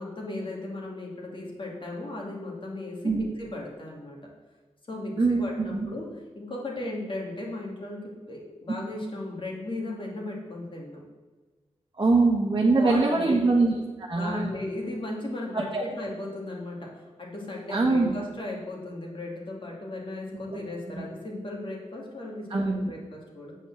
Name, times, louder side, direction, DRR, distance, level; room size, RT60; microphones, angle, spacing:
voice 1, 0.0-4.2 4.9-6.1 6.3-11.0 12.7-13.4 14.1-23.6, left 2 dB, 45° left, -2 dB, 2.5 m, -36 dB
voice 2, 5.2-5.9 12.0-13.7 14.0-14.6 15.5-15.8 17.7-18.1 21.0-21.1 22.5-22.9, right 3 dB, 40° right, -2 dB, 1.3 m, -23 dB
7.2 x 5.4 x 7.4 m, 1.3 s
cardioid pair, 60°, 12 cm